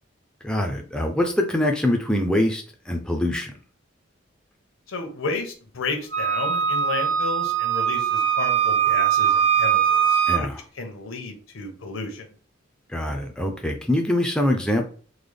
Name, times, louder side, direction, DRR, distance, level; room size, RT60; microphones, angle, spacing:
voice 1, 0.4-3.5 10.3-10.6 12.9-14.8, left 1 dB, 5° left, 3 dB, 0.4 m, -24 dB
voice 2, 4.9-10.5 10.7-12.3, left 3 dB, 85° left, 5 dB, 0.8 m, -32 dB
Wind instrument woodwind instrument, 6.1-10.4, right 8 dB, 65° right, 1.0 m, -21 dB
3.8 x 2.1 x 3.2 m, 0.40 s
head